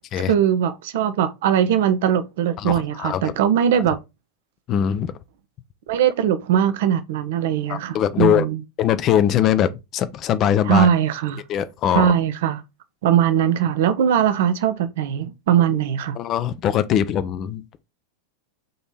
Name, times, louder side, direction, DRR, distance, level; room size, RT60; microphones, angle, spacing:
voice 1, 0.2-4.0 5.9-8.6 10.7-11.4 11.9-12.6 13.0-16.2, right 9 dB, 55° right, 0.5 m, -20 dB
voice 2, 2.6-3.3 4.7-5.1 7.7-8.5 8.8-10.9 11.5-12.1 16.2-17.8, left 10 dB, 35° left, 0.4 m, -21 dB
3.7 x 2.9 x 4.1 m
figure-of-eight pair, 90°, 0 cm